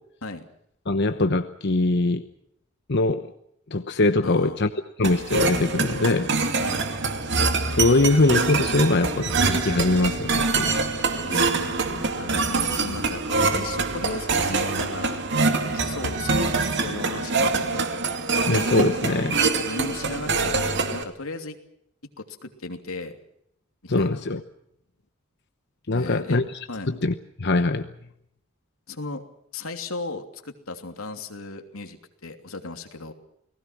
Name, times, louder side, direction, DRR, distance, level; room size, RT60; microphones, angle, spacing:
voice 1, 0.9-2.2 2.9-3.3 3.7-4.7 5.0-6.3 7.7-10.7 18.5-19.4 23.9-24.4 25.9-26.4 26.9-27.9, left 2 dB, 55° left, 9 dB, 1.0 m, -22 dB
voice 2, 4.2-4.6 6.6-6.8 11.2-15.2 15.6-17.9 19.7-21.6 22.2-23.2 23.8-24.2 25.9-26.4 26.7-26.9 28.9-29.2 29.5-33.1, left 3 dB, 90° left, 6 dB, 3.0 m, -36 dB
sound 1, 5.0-21.0, right 3 dB, 60° right, 2.5 m, -24 dB
29.5 x 19.5 x 6.1 m, 0.74 s
head